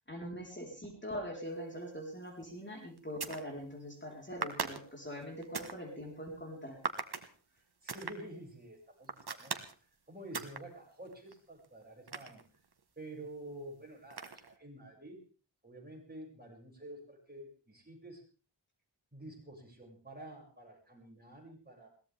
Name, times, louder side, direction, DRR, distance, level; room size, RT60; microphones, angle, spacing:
voice 1, 0.1-6.8, equal, 25° left, 0 dB, 4.5 m, -43 dB
sound 1, 2.3-2.5 3.0-3.5 4.4-5.8 6.8-7.3 7.9-8.2 9.0-9.8 10.3-10.6 11.1-12.8 14.1-14.6, right 5 dB, 55° right, 1.7 m, -39 dB
voice 2, 7.8-9.7 10.1-12.4 13.0-15.2 15.6-18.2 19.1-21.9, right 1 dB, 20° right, 0 dB, 6.8 m, -49 dB
21.5 x 18.0 x 3.6 m, 0.36 s
wide cardioid pair, 90°, 45 cm